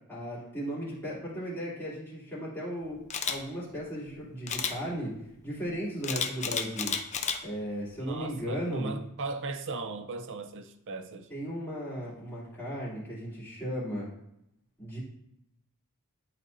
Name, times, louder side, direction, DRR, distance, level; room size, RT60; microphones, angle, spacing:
voice 1, 0.1-3.0 3.3-7.0 7.4-8.9 11.3-14.1 14.8-15.0, equal, 10° left, -8 dB, 2.8 m, -36 dB
Camera, 3.1-3.4 4.5-4.7 6.0-7.4 7.9-8.1, left 6 dB, 30° left, 0.6 m, -31 dB
voice 2, 8.0-11.3, right 3 dB, 55° right, 6 dB, 0.6 m, -37 dB
11.0 x 4.4 x 2.7 m, 0.78 s
head